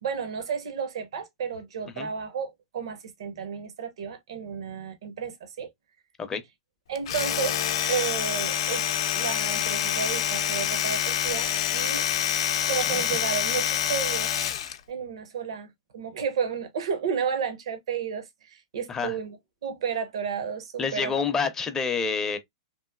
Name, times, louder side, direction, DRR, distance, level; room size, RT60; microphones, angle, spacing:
voice 1, 0.0-5.7 6.9-7.6 7.9-8.9 9.1-12.1 12.7-14.3 14.9-19.4 19.6-21.1, right 7 dB, 75° right, 0.8 m, -32 dB
Domestic sounds home sounds, 7.0-14.8, left 10 dB, 70° left, 0.5 m, -27 dB
voice 2, 20.8-22.4, left 5 dB, 15° left, 0.5 m, -28 dB
3.0 x 2.5 x 2.3 m
hypercardioid pair, 140°, 3 cm